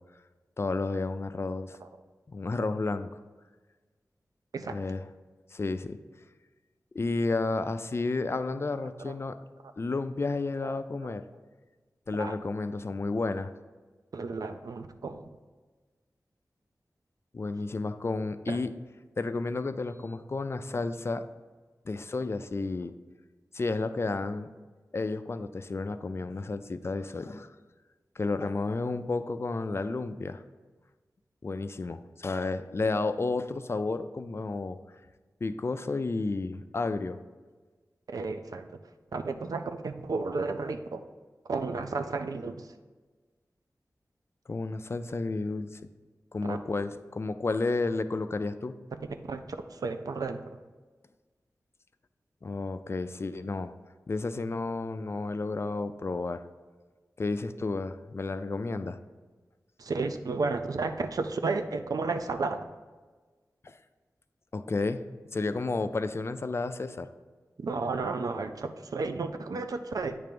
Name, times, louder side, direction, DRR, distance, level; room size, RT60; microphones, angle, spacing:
voice 1, 0.6-1.8 2.3-3.1 4.7-5.0 5.5-6.0 6.9-9.4 9.8-11.2 12.1-13.5 17.3-18.7 19.2-21.2 21.9-22.9 23.5-24.5 24.9-27.5 28.2-30.4 31.4-34.8 35.4-37.2 44.5-45.8 46.3-48.7 52.4-53.7 54.1-56.4 57.2-59.0 63.6-63.8 64.5-65.0 65.3-67.1, left 3 dB, 45° left, 10 dB, 0.4 m, -31 dB
voice 2, 14.1-15.3 18.5-18.6 38.1-38.8 39.1-41.0 41.5-42.7 46.5-46.6 49.3-50.4 59.8-62.6 67.6-70.2, right 3 dB, 80° right, 8 dB, 0.5 m, -32 dB
8.6 x 3.4 x 5.2 m, 1.3 s
wide cardioid pair, 80°, 6 cm